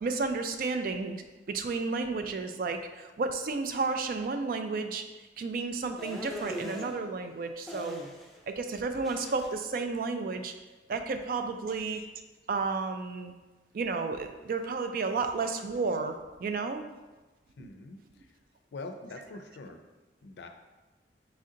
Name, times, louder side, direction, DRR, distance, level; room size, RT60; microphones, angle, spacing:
voice 1, 0.0-5.0 5.4-8.0 8.5-10.5 10.9-12.0 12.5-13.3 13.7-16.8 17.6-17.7, right 4 dB, 50° right, 7 dB, 0.3 m, -32 dB
sound 1, 6.0-6.9 7.7-8.4 8.7-9.5, equal, ahead, 0.5 m, -40 dB
voice 2, 17.6-18.3 18.7-19.8 20.2-20.5, left 3 dB, 75° left, 6 dB, 0.4 m, -44 dB
4.2 x 2.7 x 3.7 m, 1.2 s
head